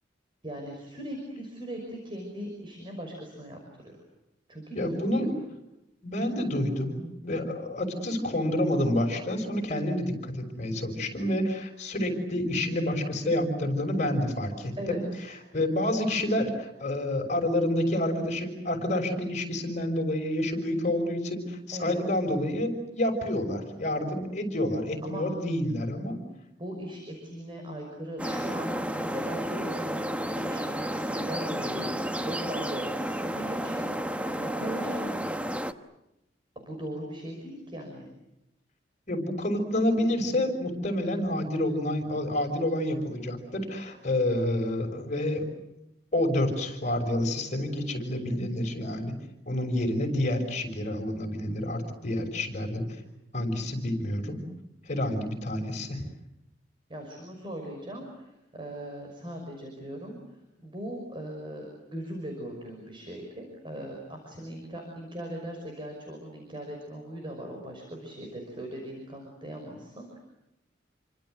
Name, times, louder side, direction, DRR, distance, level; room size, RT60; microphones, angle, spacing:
voice 1, 0.4-4.0 4.5-5.2 14.8-15.2 21.7-22.0 25.0-25.3 26.6-33.9 34.3-35.1 36.6-38.1 56.9-60.2 60.6-70.2, right 1 dB, 25° right, 2 dB, 5.8 m, -39 dB
voice 2, 4.7-5.3 6.0-15.0 15.5-26.2 39.1-45.4 46.1-49.2 49.5-52.9 53.3-54.4 54.9-56.0, left 1 dB, 40° left, 5 dB, 6.1 m, -28 dB
sound 1, 28.2-35.7, equal, 5° right, 1.1 m, -31 dB
28.5 x 25.5 x 7.9 m, 0.87 s
head